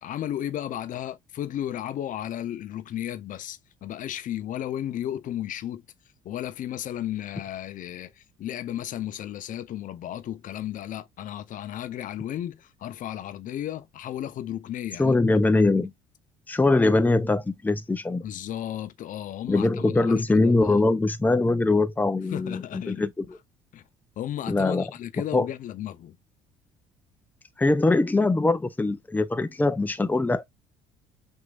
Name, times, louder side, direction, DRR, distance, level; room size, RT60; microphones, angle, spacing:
voice 1, 0.0-5.8 6.2-15.2 15.7-15.9 18.2-20.9 22.3-23.1 23.7-23.8 24.2-26.2, left 11 dB, 55° left, 0.6 m, -34 dB
voice 2, 15.0-15.9 16.5-18.2 19.5-23.4 24.5-24.8 25.3-25.5 27.6-30.4, left 2 dB, 10° left, 0.6 m, -22 dB
5.9 x 2.8 x 2.4 m
hypercardioid pair, 60°, 16 cm